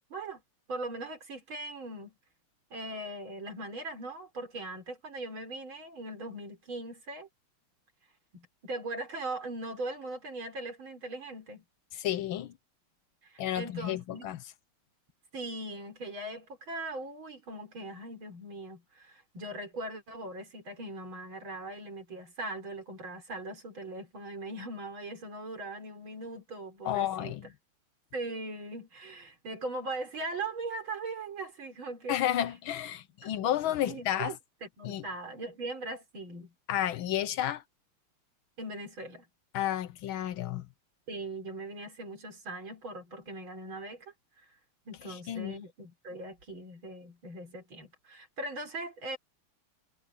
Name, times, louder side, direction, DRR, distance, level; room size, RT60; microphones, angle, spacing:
voice 1, 0.1-0.4 0.7-2.1 2.7-7.3 8.3-11.6 13.2-14.3 15.3-27.3 28.1-32.2 33.2-33.3 33.9-34.4 34.6-36.5 38.6-39.3 41.1-44.1 44.9-49.2, right 2 dB, 65° right, 5.2 m, -40 dB
voice 2, 11.9-12.5 13.4-14.4 26.8-27.5 32.1-34.4 34.8-35.0 36.7-37.6 39.5-40.7 45.0-45.6, left 11 dB, 70° left, 1.5 m, -31 dB
omnidirectional pair, 2.4 m